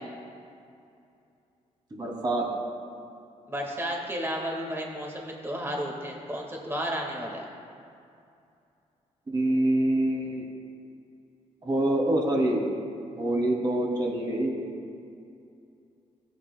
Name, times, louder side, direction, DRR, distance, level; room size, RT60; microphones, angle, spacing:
voice 1, 1.9-2.5 9.3-10.4 11.6-12.7 13.2-14.5, right 1 dB, 35° right, -2 dB, 2.5 m, -25 dB
voice 2, 3.5-7.4, equal, 20° right, -1 dB, 1.8 m, -32 dB
15.5 x 9.9 x 2.3 m, 2.5 s
cardioid pair, 85°, 13 cm